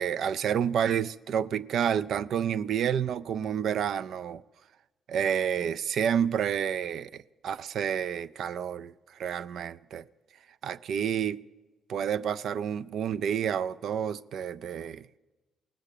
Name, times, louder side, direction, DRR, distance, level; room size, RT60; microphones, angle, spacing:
voice 1, 0.0-4.4 5.1-10.1 10.6-11.4 11.9-15.1, right 8 dB, 70° right, 0.3 m, -29 dB
18.5 x 7.3 x 6.6 m
cardioid pair, 90°, 0 cm